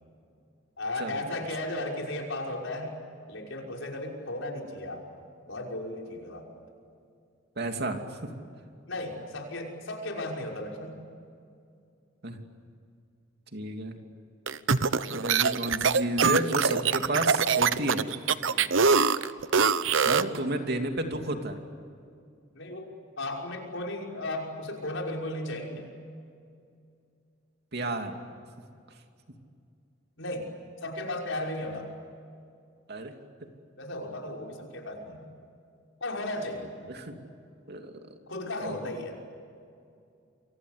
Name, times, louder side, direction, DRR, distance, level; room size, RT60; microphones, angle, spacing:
voice 1, 0.8-3.0 3.3-6.6 8.9-11.0 18.4-18.8 22.5-22.9 23.2-25.9 30.2-30.5 30.8-31.9 33.8-35.3 36.0-36.9 38.3-39.2, left 1 dB, 70° left, 0 dB, 6.0 m, -35 dB
voice 2, 7.6-8.3 12.2-12.4 13.5-14.0 15.1-18.0 20.0-21.6 27.7-28.2 32.9-33.1 36.9-37.1 37.7-37.9 38.6-39.0, right 1 dB, 55° right, 4 dB, 2.9 m, -31 dB
sound 1, 14.5-20.4, right 5 dB, 75° right, 0.9 m, -23 dB
29.5 x 24.5 x 8.3 m, 2.4 s
head